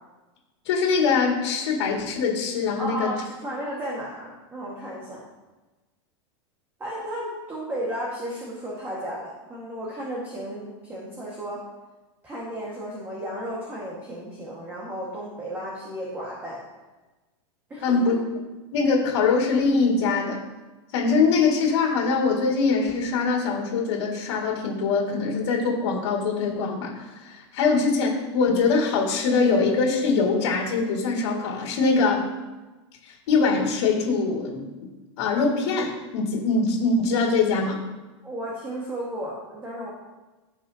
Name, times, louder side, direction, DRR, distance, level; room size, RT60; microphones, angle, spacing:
voice 1, 0.7-3.1 17.8-18.1 18.7-20.4 20.9-32.3 33.0-34.7 35.2-37.8, left 4 dB, 65° left, -2 dB, 2.3 m, -23 dB
voice 2, 2.8-5.2 6.8-11.6 12.2-16.6 17.7-18.2 38.2-39.9, equal, 15° right, -5 dB, 1.7 m, -34 dB
15.5 x 5.4 x 2.9 m, 1.2 s
supercardioid pair, 155°, 15 cm